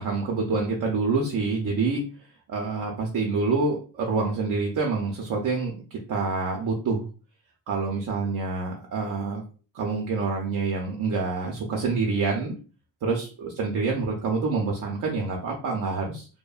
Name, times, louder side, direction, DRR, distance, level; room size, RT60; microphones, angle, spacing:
voice 1, 0.0-2.0 2.5-7.0 7.7-9.4 9.7-12.6 13.0-16.3, right 4 dB, 55° right, 0 dB, 0.5 m, -27 dB
2.7 x 2.1 x 2.3 m, 0.37 s
wide cardioid pair, 170°, 40 cm